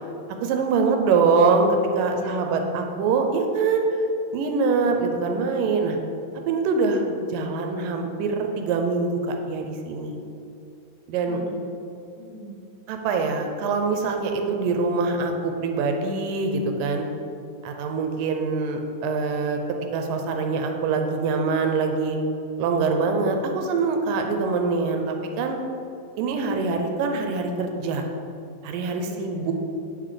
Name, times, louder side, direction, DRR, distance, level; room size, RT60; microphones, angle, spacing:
voice 1, 0.4-3.8 4.3-6.0 6.5-10.2 11.1-11.4 12.9-17.1 17.6-19.6 19.9-22.2 22.6-25.6 26.2-28.0 28.6-29.5, right 4 dB, 85° right, 4 dB, 2.2 m, -24 dB
voice 2, 2.1-3.0 11.3-11.7 12.2-12.5 29.0-29.5, left 1 dB, 65° left, -4 dB, 2.4 m, -38 dB
8.5 x 3.9 x 4.9 m, 2.7 s
omnidirectional pair, 3.9 m